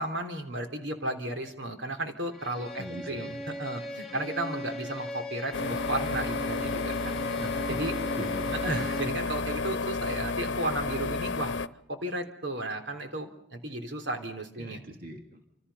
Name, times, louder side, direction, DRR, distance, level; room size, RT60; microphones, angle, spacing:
voice 1, 0.0-3.3 3.6-7.2 7.7-7.9 8.6-11.5 11.9-14.8, right 1 dB, 75° right, 5 dB, 3.7 m, -34 dB
Bowed string instrument, 2.3-9.2, left 1 dB, ahead, 4.8 m, -38 dB
voice 2, 2.8-3.4 7.4-7.8 8.2-8.9 9.2-9.3 14.6-15.4, equal, 50° right, 3 dB, 3.2 m, -41 dB
sound 1, 5.5-11.7, left 4 dB, 80° left, 0.9 m, -32 dB
29.0 x 27.5 x 5.7 m, 0.74 s
head